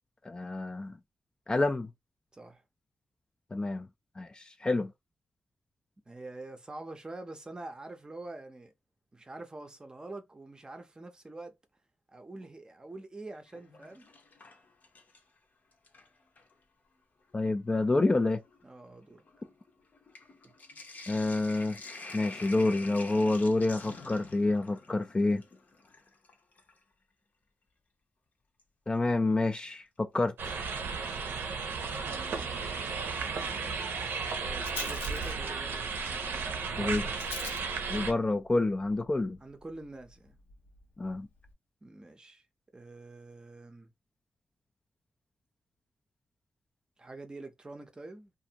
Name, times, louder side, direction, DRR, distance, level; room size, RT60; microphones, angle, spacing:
voice 1, 0.2-0.9 1.5-1.9 3.5-3.9 4.2-4.9 17.3-18.4 21.1-21.8 22.1-25.4 28.9-30.6 36.8-37.1 37.9-39.4 41.0-41.3, left 2 dB, 25° left, 0.3 m, -28 dB
voice 2, 6.1-8.7 9.1-11.5 12.1-14.1 18.6-19.3 20.4-20.5 32.0-32.9 34.4-35.9 39.4-40.4 41.8-42.4 42.7-43.9 47.0-48.3, right 2 dB, 20° right, 0.6 m, -46 dB
Sink (filling or washing), 13.3-15.4 15.7-16.5 17.3-17.4 17.7-26.8 28.6-28.7 30.5-31.0 31.3-31.4 31.6-31.7, left 3 dB, 50° left, 0.7 m, -48 dB
sound 1, 30.4-38.1, right 5 dB, 80° right, 0.6 m, -34 dB
Rattle, 31.6-41.5, left 4 dB, 85° left, 0.8 m, -49 dB
2.5 x 2.5 x 2.8 m
wide cardioid pair, 105°, 4 cm